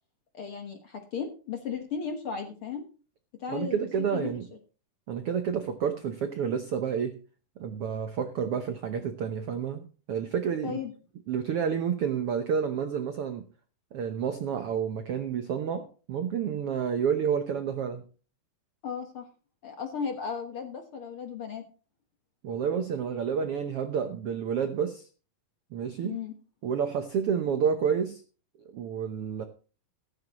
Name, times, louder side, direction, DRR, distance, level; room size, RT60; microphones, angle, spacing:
voice 1, 0.3-2.8 3.4-4.3 10.6-10.9 18.8-19.3 19.6-21.6 26.0-26.3, left 6 dB, 55° left, 4 dB, 1.6 m, -35 dB
voice 2, 3.5-4.5 5.1-7.2 7.6-10.8 11.3-13.4 13.9-18.0 22.4-25.1 25.7-26.2 26.6-28.2 28.7-29.4, right 7 dB, 75° right, 8 dB, 1.3 m, -29 dB
14.5 x 14.0 x 3.0 m, 0.37 s
omnidirectional pair, 4.0 m